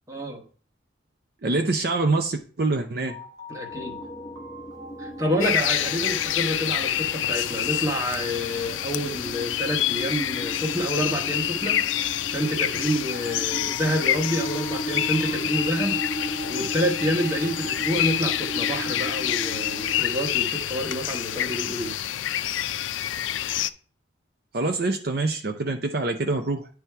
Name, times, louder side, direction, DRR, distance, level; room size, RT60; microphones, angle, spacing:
voice 1, 0.1-0.4 3.5-4.0 5.0-22.0, equal, 15° right, 2 dB, 1.1 m, -28 dB
voice 2, 1.4-3.2 24.5-26.7, right 3 dB, 55° right, 4 dB, 0.6 m, -25 dB
sound 1, 3.1-11.9 13.1-22.3, left 2 dB, 80° right, 1.9 m, -45 dB
sound 2, 3.7-20.0, right 1 dB, 20° left, 0.8 m, -37 dB
sound 3, 5.4-23.7, left 12 dB, 85° left, 0.4 m, -27 dB
9.6 x 3.5 x 4.4 m, 0.41 s
head